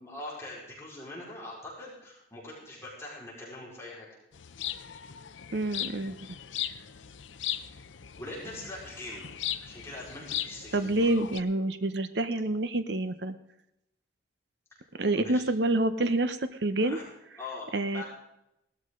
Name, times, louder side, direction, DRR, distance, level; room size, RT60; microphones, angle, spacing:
voice 1, 0.0-4.1 8.2-9.3 9.6-11.1 15.1-15.4 16.8-17.0 17.4-18.0, left 2 dB, 15° left, -6 dB, 4.7 m, -42 dB
sound 1, 4.3-11.4, left 11 dB, 85° left, 0.7 m, -38 dB
voice 2, 5.5-6.2 10.7-13.3 15.0-17.0 17.7-18.0, right 2 dB, 65° right, 10 dB, 0.8 m, -27 dB
17.5 x 13.0 x 3.8 m, 0.84 s
head